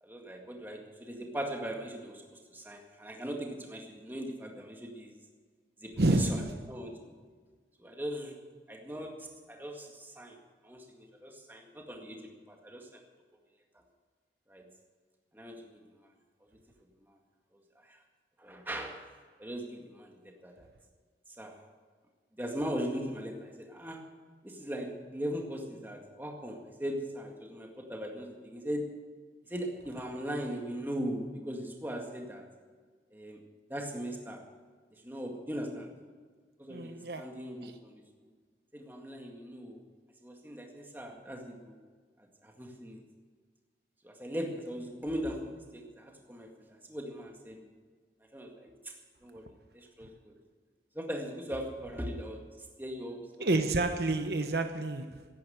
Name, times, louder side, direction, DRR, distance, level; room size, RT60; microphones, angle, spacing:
voice 1, 0.0-5.1 5.8-6.4 6.7-7.2 7.8-8.4 8.7-13.0 13.7-13.8 14.5-14.7 15.3-16.1 17.1-17.2 17.8-18.0 18.4-19.1 19.4-20.7 21.4-21.6 22.4-24.2 24.4-29.0 29.4-32.5 33.1-33.4 33.7-34.5 34.9-36.0 36.6-38.0 38.7-39.8 40.2-41.8 42.4-43.0 44.0-47.7 48.3-48.9 49.2-50.3 50.9-52.5 52.8-53.3, equal, 10° right, 2.0 m, -39 dB
voice 2, 6.0-6.6 36.7-37.3 37.6-37.8 53.4-55.3, right 2 dB, 65° right, 1.0 m, -29 dB
15.5 x 10.5 x 7.9 m
head